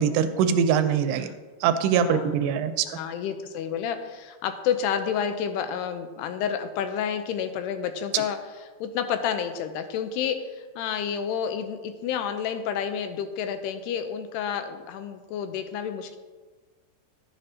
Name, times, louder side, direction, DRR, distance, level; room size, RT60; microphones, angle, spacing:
voice 1, 0.0-1.3 1.6-2.9 8.1-8.2, right 7 dB, 85° right, 10 dB, 2.6 m, -23 dB
voice 2, 2.0-2.5 2.9-8.4 8.8-16.2, left 8 dB, 85° left, 8 dB, 2.6 m, -30 dB
11.5 x 10.0 x 2.8 m, 1.3 s
omnidirectional pair, 4.9 m